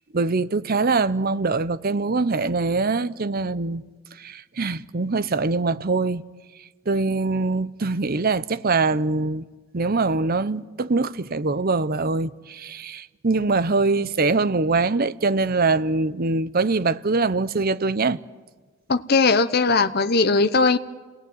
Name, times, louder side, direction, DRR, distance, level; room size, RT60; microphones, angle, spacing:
voice 1, 0.1-3.8 4.2-6.2 6.9-9.4 9.7-18.2, right 3 dB, 45° right, 0.7 m, -23 dB
voice 2, 18.9-20.8, left 4 dB, 50° left, 0.8 m, -19 dB
28.5 x 19.0 x 9.5 m
head